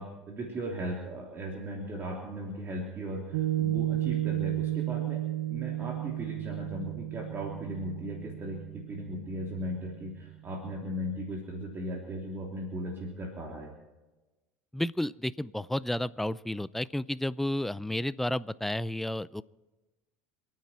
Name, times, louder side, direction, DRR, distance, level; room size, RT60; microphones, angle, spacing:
voice 1, 0.0-5.2 5.5-13.7, right 1 dB, 35° right, -1 dB, 3.3 m, -37 dB
Piano, 3.3-10.0, right 14 dB, 80° right, 1.2 m, -33 dB
voice 2, 14.7-19.4, left 1 dB, 5° left, 17 dB, 0.5 m, -31 dB
28.0 x 9.5 x 4.4 m, 1.1 s
supercardioid pair, 95°, 7 cm